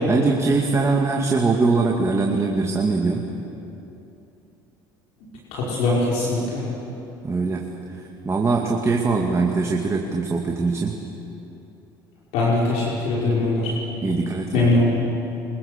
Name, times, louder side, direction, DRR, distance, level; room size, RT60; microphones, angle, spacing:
voice 1, 0.1-3.3 7.2-7.7 8.2-11.0 14.0-14.7, right 3 dB, 25° right, 0 dB, 2.4 m, -22 dB
voice 2, 5.5-6.6 12.3-13.8 14.5-15.0, left 2 dB, 70° left, -6 dB, 5.5 m, -21 dB
25.0 x 23.0 x 6.8 m, 2.9 s
hypercardioid pair, 70°, 11 cm